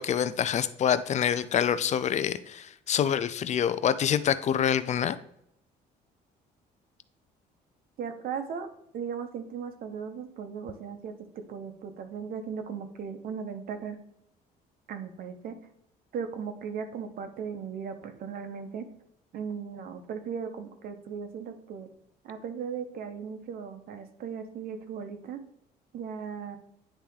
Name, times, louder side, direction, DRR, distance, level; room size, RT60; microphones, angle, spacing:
voice 1, 0.0-5.2, left 9 dB, 45° left, 14 dB, 0.5 m, -26 dB
voice 2, 8.0-8.7 8.9-14.0 14.9-15.6 16.1-18.8 19.3-21.9 22.2-25.4 25.9-26.6, right 6 dB, 60° right, 7 dB, 1.1 m, -37 dB
9.9 x 3.4 x 3.2 m, 0.74 s
cardioid pair, 110°, 17 cm